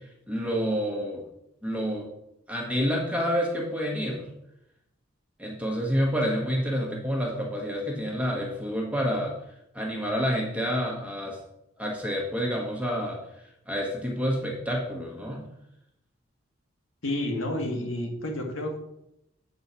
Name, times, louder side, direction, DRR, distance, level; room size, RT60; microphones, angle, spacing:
voice 1, 0.3-1.3 1.6-2.1 2.5-4.3 5.4-9.3 9.7-11.4 11.8-13.2 13.7-15.5, equal, 5° right, -1 dB, 1.3 m, -28 dB
voice 2, 17.0-18.8, left 1 dB, 80° left, 1 dB, 1.7 m, -30 dB
8.1 x 4.5 x 5.6 m, 0.82 s
head